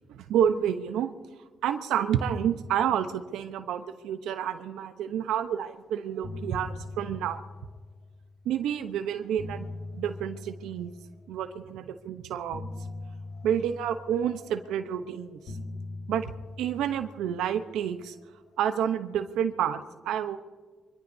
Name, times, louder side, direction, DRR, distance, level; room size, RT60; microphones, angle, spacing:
voice 1, 0.1-1.1 1.6-7.4 8.4-9.7 9.9-10.9 11.3-12.6 13.4-15.4 16.1-16.3 16.6-18.2 18.6-20.4, right 9 dB, 85° right, 8 dB, 0.8 m, -29 dB
sound 1, 5.6-5.8 6.1-8.4 9.1-11.5 12.5-15.0 15.5-18.0, left 2 dB, 65° left, 4.1 m, -42 dB
24.0 x 21.5 x 2.7 m, 1.4 s
cardioid pair, 90°, 0 cm